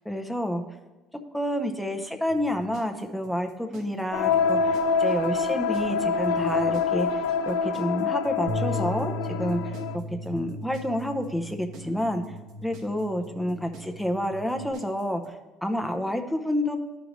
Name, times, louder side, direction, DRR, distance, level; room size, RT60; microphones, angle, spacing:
voice 1, 0.1-0.6 1.3-9.1 9.4-9.6 10.2-12.2 12.6-16.8, equal, ahead, 4 dB, 0.5 m, -29 dB
sound 1, 2.3-15.3, right 2 dB, 55° right, 1.0 m, -49 dB
sound 2, 4.1-10.0, left 5 dB, 85° left, 0.3 m, -26 dB
Bass guitar, 8.5-14.7, equal, 90° right, 0.8 m, -37 dB
12.5 x 5.1 x 3.1 m, 1.2 s
cardioid pair, 170°, 0 cm